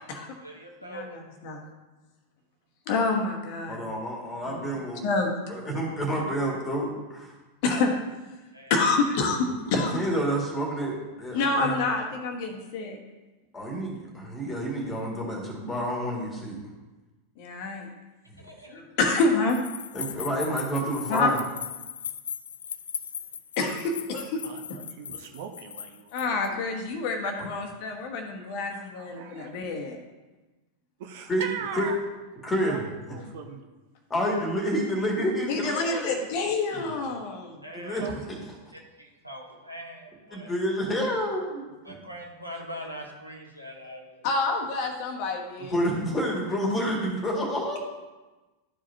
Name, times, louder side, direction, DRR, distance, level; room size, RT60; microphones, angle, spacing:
voice 1, 0.4-1.0 8.5-8.8 18.4-18.8 37.6-38.0 38.7-40.5 41.8-44.3, equal, 85° right, 0 dB, 1.2 m, -42 dB
voice 2, 2.9-3.8 4.4-5.3 7.6-7.9 8.7-10.0 11.3-13.0 17.4-17.9 18.7-19.6 21.1-21.3 23.6-24.4 26.1-30.0 35.5-37.6 44.2-45.8, left 3 dB, 45° left, 2 dB, 1.1 m, -27 dB
voice 3, 3.7-5.0 5.5-7.3 9.7-11.8 13.5-16.6 19.9-21.4 31.3-31.4 31.8-31.9 32.4-32.8 33.1-33.2 34.1-36.2 36.7-36.8 37.7-38.0 40.3-41.9 45.7-47.8, equal, 15° left, -1 dB, 2.0 m, -29 dB
sound 1, 19.5-26.5, left 8 dB, 65° left, 0.3 m, -38 dB
voice 4, 24.4-26.6 28.4-29.5 31.0-32.0 32.6-33.7 37.9-38.3, right 7 dB, 50° right, 5 dB, 0.7 m, -40 dB
12.0 x 4.9 x 2.8 m, 1.2 s
figure-of-eight pair, 90°, 0 cm